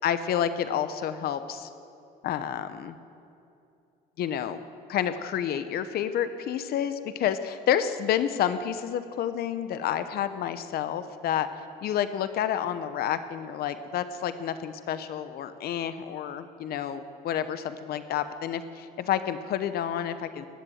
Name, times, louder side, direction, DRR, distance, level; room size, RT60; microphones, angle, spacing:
voice 1, 0.0-1.7 2.2-2.9 4.2-4.6 4.9-11.5 11.8-20.5, left 9 dB, 65° left, 11 dB, 0.9 m, -29 dB
20.0 x 7.8 x 7.9 m, 2.6 s
cardioid pair, 110°, 17 cm